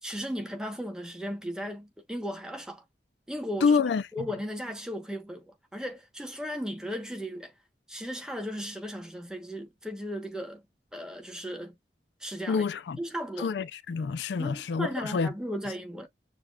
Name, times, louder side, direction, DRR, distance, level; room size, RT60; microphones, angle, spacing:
voice 1, 0.0-2.8 3.3-3.8 4.1-7.5 7.9-10.6 10.9-11.7 12.2-12.6 12.9-13.5 14.4-16.1, equal, 5° right, 0.9 m, -36 dB
voice 2, 3.6-4.3 12.5-13.0 13.4-15.3, left 5 dB, 75° left, 0.4 m, -27 dB
6.5 x 2.3 x 2.3 m
head